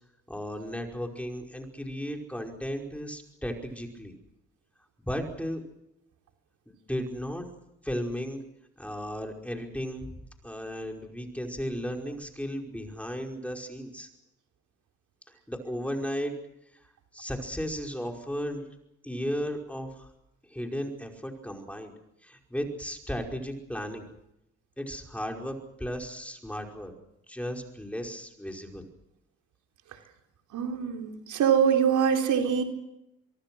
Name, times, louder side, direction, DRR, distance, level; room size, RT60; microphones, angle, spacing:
voice 1, 0.3-4.1 5.0-5.7 6.7-7.5 7.8-8.4 8.8-14.1 15.3-16.3 17.1-18.7 19.0-20.1 20.5-21.9 22.2-24.1 24.8-26.9 27.3-28.9, equal, 5° left, 2 dB, 5.2 m, -35 dB
voice 2, 30.5-32.6, right 7 dB, 75° right, 4 dB, 3.8 m, -24 dB
24.5 x 23.5 x 6.3 m, 0.84 s
cardioid pair, 90°, 30 cm